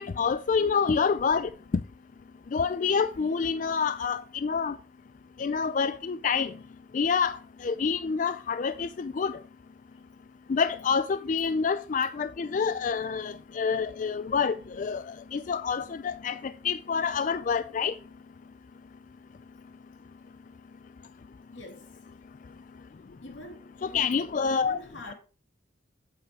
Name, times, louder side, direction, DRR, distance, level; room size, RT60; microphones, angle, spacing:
voice 1, 0.0-1.5 2.5-4.8 5.4-6.5 6.9-7.4 7.6-9.4 10.5-15.0 15.3-17.9 23.8-24.8, left 5 dB, 45° left, 0.4 m, -27 dB
voice 2, 2.8-3.3 6.1-6.2 9.9-10.0 21.5-22.1 23.2-24.2 24.5-25.1, left 2 dB, 85° left, 2.7 m, -46 dB
8.4 x 8.1 x 4.6 m
head